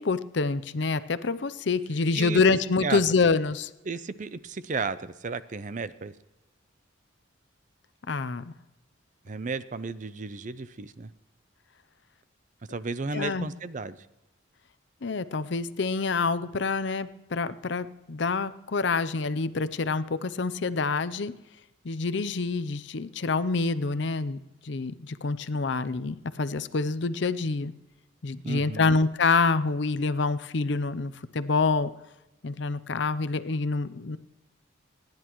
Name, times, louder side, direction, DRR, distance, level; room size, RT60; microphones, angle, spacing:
voice 1, 0.0-3.7 8.1-8.5 13.1-13.5 15.0-21.3 21.8-24.4 24.6-27.7 28.2-31.9 32.4-34.2, left 4 dB, 60° left, 14 dB, 0.6 m, -27 dB
voice 2, 3.8-6.1 9.2-11.1 12.7-14.1 28.4-29.0, right 4 dB, 40° right, 14 dB, 0.5 m, -33 dB
29.0 x 10.5 x 3.0 m, 1.0 s
head